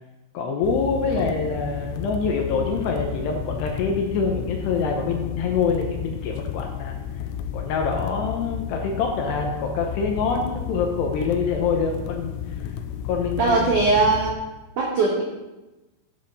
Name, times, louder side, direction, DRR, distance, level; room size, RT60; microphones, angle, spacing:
voice 1, 0.3-7.0 7.5-12.3 13.0-13.6, left 5 dB, 75° left, 2 dB, 2.7 m, -25 dB
sound 1, 0.6-14.3, left 9 dB, 90° left, 3.2 m, -32 dB
voice 2, 13.4-14.3 14.8-15.2, right 3 dB, 80° right, -2 dB, 1.8 m, -20 dB
10.5 x 9.8 x 4.1 m, 1.0 s
omnidirectional pair, 5.7 m